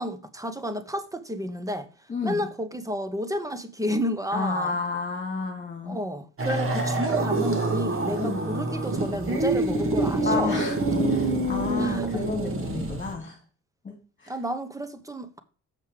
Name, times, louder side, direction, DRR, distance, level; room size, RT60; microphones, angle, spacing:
voice 1, 0.0-1.9 2.2-4.8 5.9-10.6 11.8-12.1 14.3-15.4, equal, 10° right, 1.2 m, -31 dB
voice 2, 2.1-2.5 4.3-6.0 8.2-8.5 10.2-10.8 11.1-13.4 13.8-14.0 14.2-14.3, left 4 dB, 25° left, 2.4 m, -31 dB
sound 1, 6.4-13.1, right 2 dB, 45° right, 2.3 m, -26 dB
7.5 x 5.4 x 5.1 m
cardioid pair, 90°, 30 cm